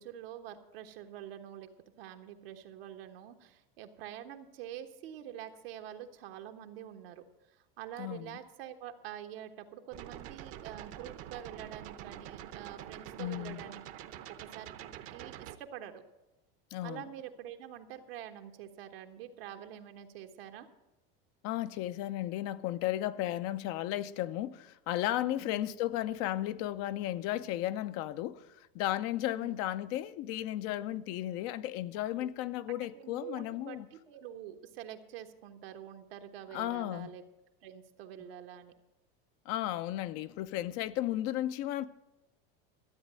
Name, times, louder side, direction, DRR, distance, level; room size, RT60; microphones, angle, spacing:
voice 1, 0.0-1.7 2.0-16.0 16.8-20.7 25.4-25.6 29.4-29.6 32.2-32.3 32.9-37.2 37.6-38.7, right 10 dB, 80° right, 1.4 m, -46 dB
voice 2, 8.0-8.3 13.2-13.6 16.7-17.0 21.4-28.5 28.7-33.9 36.5-37.1 39.5-41.9, left 14 dB, 55° left, 0.7 m, -34 dB
sound 1, 9.9-15.6, right 11 dB, 50° right, 0.9 m, -46 dB
13.0 x 8.1 x 7.6 m
supercardioid pair, 115°, 29 cm